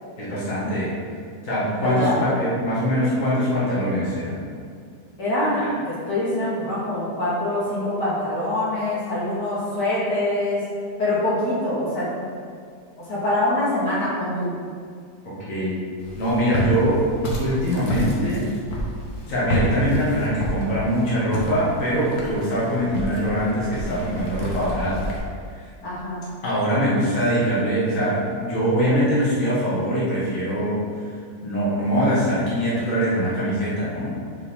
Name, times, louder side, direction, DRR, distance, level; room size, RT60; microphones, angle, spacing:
voice 1, 0.2-0.9 1.4-4.4 15.5-15.8 16.2-17.0 17.4-18.5 19.3-25.1 25.6-25.7 26.4-31.2 31.4-34.1, equal, 50° left, -8 dB, 2.3 m, -23 dB
voice 2, 1.8-2.2 5.2-10.6 11.0-12.3 13.0-14.6 25.8-26.2, left 1 dB, 90° left, -9 dB, 2.8 m, -24 dB
Walk footsteps, 16.0-25.2, right 1 dB, 70° left, 1.8 m, -29 dB
6.1 x 5.1 x 5.6 m, 2.2 s
omnidirectional pair, 1.8 m